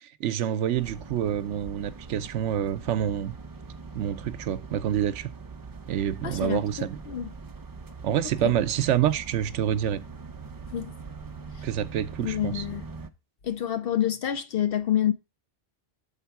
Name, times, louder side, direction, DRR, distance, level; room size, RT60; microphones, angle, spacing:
voice 1, 0.0-3.3 3.9-5.3 5.9-7.0 8.0-10.0 11.6-12.6, right 10 dB, 75° right, 0.9 m, -27 dB
sound 1, 0.7-13.1, right 4 dB, 35° right, 0.3 m, -42 dB
voice 2, 6.2-6.7 7.1-7.3 8.4-8.6 10.7-10.9 11.6-11.7 12.2-12.8 13.4-15.1, left 10 dB, 60° left, 0.6 m, -27 dB
7.4 x 4.4 x 5.7 m
omnidirectional pair, 1.3 m